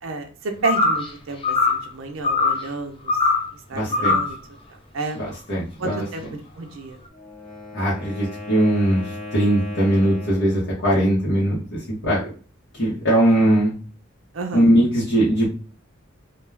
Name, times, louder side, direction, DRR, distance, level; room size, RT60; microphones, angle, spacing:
voice 1, 0.0-3.2 3.7-4.4 4.9-5.2 5.8-7.0 14.3-14.7, right 3 dB, 70° right, 4 dB, 0.5 m, -30 dB
sound 1, 0.6-1.1 1.4-1.9 2.2-2.6 3.1-3.5 3.9-4.4, left 3 dB, 25° left, 0.5 m, -20 dB
voice 2, 3.7-4.2 5.1-6.0 7.7-12.3 12.7-13.7 14.5-15.5, right 1 dB, 55° left, -7 dB, 0.8 m, -20 dB
Wind instrument woodwind instrument, 7.1-10.7, left 2 dB, ahead, 0.8 m, -37 dB
2.3 x 2.2 x 3.2 m, 0.38 s
head